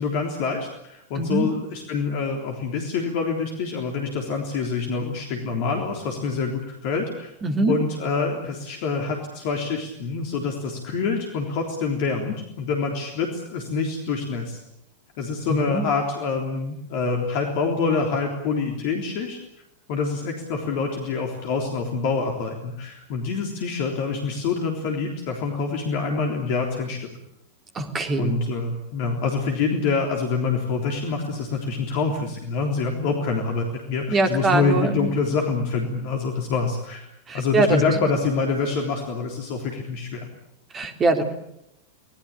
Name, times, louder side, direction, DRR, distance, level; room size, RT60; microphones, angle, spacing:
voice 1, 0.0-7.3 7.7-14.6 15.2-19.4 19.9-27.1 28.2-37.1 37.3-40.3, left 4 dB, 45° left, 2 dB, 3.7 m, -26 dB
voice 2, 1.2-1.5 7.4-7.8 15.5-15.9 27.7-28.4 34.1-35.1 37.3-38.1 40.7-41.2, right 2 dB, 25° right, 6 dB, 3.6 m, -23 dB
26.0 x 19.5 x 8.7 m, 0.78 s
figure-of-eight pair, 90°, 0 cm